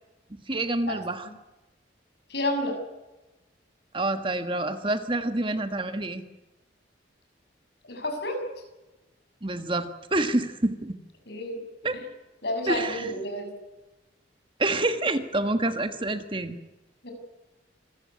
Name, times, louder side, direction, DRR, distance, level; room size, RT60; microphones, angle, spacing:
voice 1, 0.5-1.3 3.9-6.2 9.4-11.0 11.8-12.0 12.7-13.1 14.6-16.6, right 2 dB, 25° right, 9 dB, 1.4 m, -27 dB
voice 2, 2.3-2.8 7.8-8.4 11.3-11.6 12.4-13.5 17.0-17.1, left 1 dB, 60° left, 4 dB, 6.8 m, -30 dB
27.0 x 15.0 x 9.7 m, 1.0 s
head